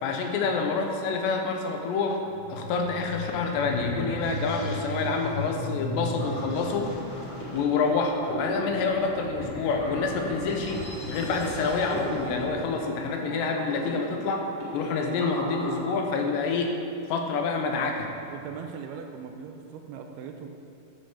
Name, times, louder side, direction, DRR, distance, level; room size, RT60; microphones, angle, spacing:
voice 1, 0.0-2.2 2.5-6.9 7.5-14.4 14.7-16.8 17.1-18.1, left 4 dB, 85° left, 3 dB, 3.2 m, -27 dB
sound 1, 2.2-12.7, left 2 dB, 60° left, 1.4 m, -36 dB
sound 2, 5.9-16.7, equal, 40° left, 2.3 m, -38 dB
voice 2, 18.3-20.5, right 6 dB, 80° right, 4 dB, 2.4 m, -40 dB
10.0 x 7.4 x 7.4 m, 3.0 s
omnidirectional pair, 4.8 m